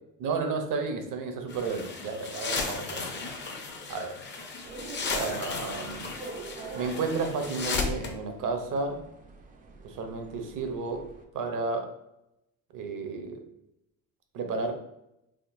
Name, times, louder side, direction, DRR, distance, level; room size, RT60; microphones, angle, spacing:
voice 1, 0.2-3.2 3.9-4.2 5.1-6.1 6.7-9.0 9.8-11.1 11.3-11.9 12.7-13.4 14.3-14.7, right 4 dB, 55° right, 5 dB, 0.7 m, -32 dB
sound 1, 1.5-8.1, left 4 dB, 30° left, 0.6 m, -35 dB
sound 2, 4.6-11.2, right 4 dB, 20° right, 0.4 m, -45 dB
3.6 x 2.1 x 2.5 m, 0.85 s
supercardioid pair, 85°, 39 cm